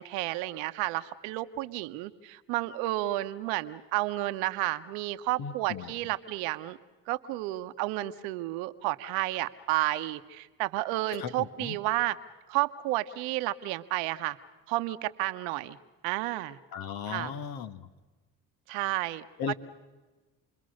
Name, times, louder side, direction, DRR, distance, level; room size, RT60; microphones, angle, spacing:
voice 1, 0.0-6.8 7.1-12.2 12.5-14.4 14.7-15.8 16.0-16.6 17.1-17.4 18.7-19.5, right 17 dB, 85° right, 11 dB, 1.1 m, -31 dB
voice 2, 5.4-5.9 11.2-11.3 11.6-11.8 16.7-17.9 19.4-19.5, left 7 dB, 65° left, 11 dB, 1.6 m, -36 dB
29.0 x 21.5 x 6.5 m, 1.2 s
supercardioid pair, 65°, 39 cm